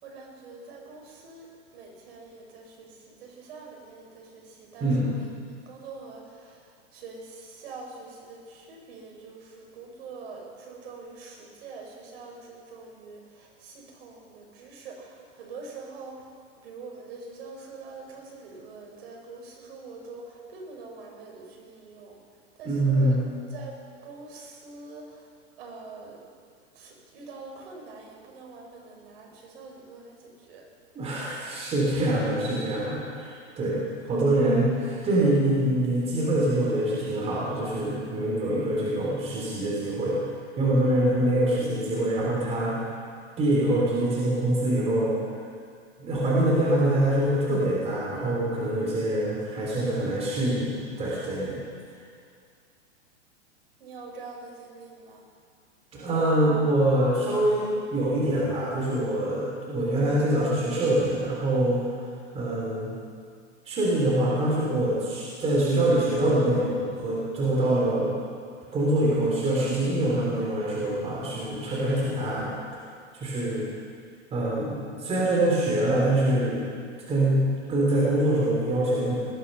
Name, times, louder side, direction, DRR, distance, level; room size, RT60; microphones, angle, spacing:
voice 1, 0.0-1.5 1.7-5.3 5.6-16.2 16.6-22.1 22.6-23.2 23.5-23.7 24.0-25.3 25.6-26.2 26.7-30.7 53.8-55.2, right 4 dB, 55° right, 0 dB, 5.2 m, -44 dB
voice 2, 4.8-5.1 22.7-23.3 31.0-40.2 40.6-42.7 43.4-45.1 46.0-51.6 55.9-61.8 62.3-62.9 63.7-68.2 68.7-72.5 73.1-73.7 74.3-76.7 77.1-77.4 77.7-79.1, right 1 dB, 15° right, -5 dB, 3.6 m, -24 dB
19.5 x 13.0 x 5.6 m, 2.2 s
hypercardioid pair, 150°, 36 cm